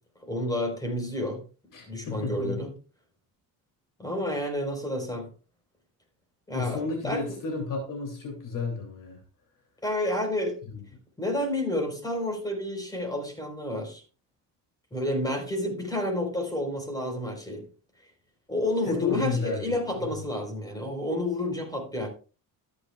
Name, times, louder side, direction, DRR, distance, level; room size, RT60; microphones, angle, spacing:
voice 1, 0.2-1.4 1.9-2.7 4.0-5.3 6.5-7.2 9.8-10.6 11.2-14.0 14.9-17.7 18.5-22.1, left 1 dB, 10° left, 3 dB, 4.0 m, -30 dB
voice 2, 1.7-2.5 6.5-9.2 10.7-10.9 18.9-20.2, left 4 dB, 55° left, 1 dB, 2.8 m, -32 dB
13.5 x 9.8 x 2.3 m, 0.36 s
cardioid pair, 115°, 38 cm